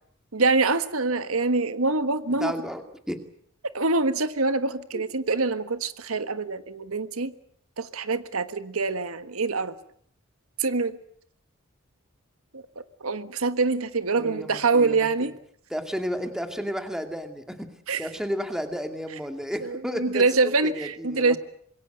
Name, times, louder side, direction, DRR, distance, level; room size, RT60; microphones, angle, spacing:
voice 1, 0.3-2.5 3.7-7.3 7.8-9.7 10.6-11.0 12.5-12.6 13.0-15.3 17.9-18.1 19.6-21.4, right 3 dB, 80° right, 11 dB, 1.4 m, -25 dB
voice 2, 2.4-2.8 3.1-3.2 4.9-5.0 14.1-15.3 15.7-17.7 18.0-21.4, equal, 5° right, 6 dB, 2.3 m, -32 dB
26.0 x 22.0 x 8.0 m, 0.65 s
head